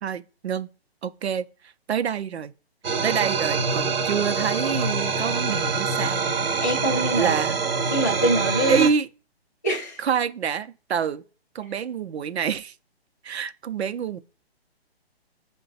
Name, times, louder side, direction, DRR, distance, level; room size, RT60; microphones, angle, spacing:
voice 1, 0.0-0.7 1.0-1.5 1.9-2.5 3.0-6.3 7.2-7.6 8.7-9.1 10.0-11.2 11.5-12.7 13.2-14.2, right 7 dB, 85° right, 0.6 m, -26 dB
sound 1, 2.8-8.9, right 4 dB, 65° right, 1.0 m, -25 dB
voice 2, 6.6-7.4 7.9-8.9 9.6-10.0, right 1 dB, 20° left, 0.3 m, -24 dB
5.7 x 2.2 x 3.9 m
hypercardioid pair, 165°, 31 cm